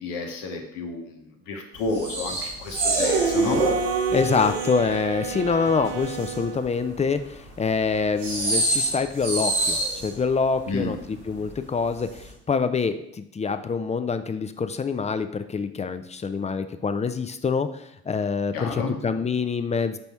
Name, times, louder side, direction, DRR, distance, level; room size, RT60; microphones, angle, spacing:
voice 1, 0.0-3.6 10.7-10.9 18.5-18.9, left 3 dB, 65° left, 3 dB, 1.0 m, -31 dB
sound 1, 1.8-4.9 5.2-6.6 7.0-7.2 8.0-10.2 11.0-11.1 11.3-11.5 12.0-12.3, right 2 dB, 85° right, 1.6 m, -25 dB
sound 2, 3.0-6.9, right 8 dB, 50° right, 0.8 m, -34 dB
voice 2, 4.1-20.0, left 5 dB, 20° left, 10 dB, 0.5 m, -26 dB
5.4 x 4.1 x 4.6 m, 0.78 s
figure-of-eight pair, 45°, 33 cm